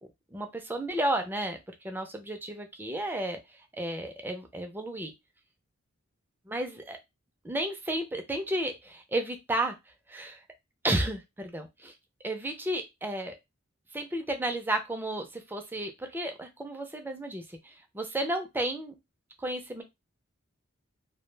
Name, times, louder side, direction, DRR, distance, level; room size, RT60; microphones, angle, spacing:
voice 1, 0.3-1.6 1.8-3.4 3.7-5.1 6.5-7.0 7.4-9.8 10.1-10.4 10.8-11.9 12.2-13.3 13.9-18.9 19.4-19.8, right 1 dB, 10° right, 4 dB, 0.4 m, -32 dB
2.2 x 2.1 x 3.2 m, 0.21 s
head